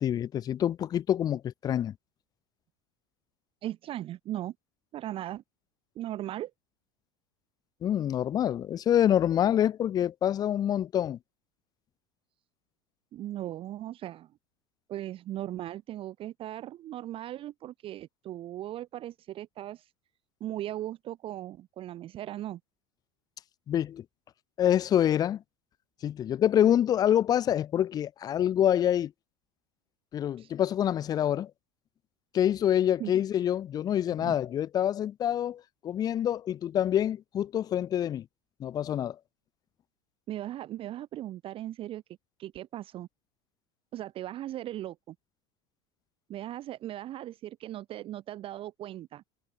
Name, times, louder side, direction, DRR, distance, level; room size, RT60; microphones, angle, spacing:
voice 1, 0.0-1.9 7.8-11.2 23.7-24.0 24.6-25.4 26.0-29.1 30.1-31.5 32.3-38.3 38.6-39.2, left 10 dB, 25° left, 0.4 m, -26 dB
voice 2, 3.6-4.5 4.9-5.4 6.0-6.5 13.1-14.3 14.9-19.9 20.4-22.6 30.4-30.5 33.0-33.1 34.2-34.4 40.3-42.0 42.4-43.1 43.9-45.2 46.3-49.2, right 13 dB, 40° right, 0.7 m, -38 dB
supercardioid pair, 115°, 15 cm